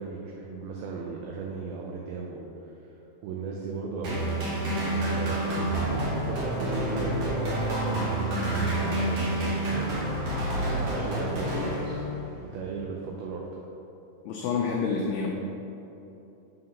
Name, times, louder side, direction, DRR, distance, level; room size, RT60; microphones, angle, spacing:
voice 1, 0.0-3.0 3.2-4.2 5.1-10.1 10.6-12.0 12.4-13.4, right 4 dB, 85° right, -1 dB, 2.1 m, -37 dB
sound 1, 4.0-12.4, right 1 dB, 65° right, 1.9 m, -28 dB
voice 2, 14.3-15.3, left 5 dB, 90° left, 0 dB, 2.2 m, -28 dB
7.6 x 3.8 x 5.8 m, 3.0 s
omnidirectional pair, 5.1 m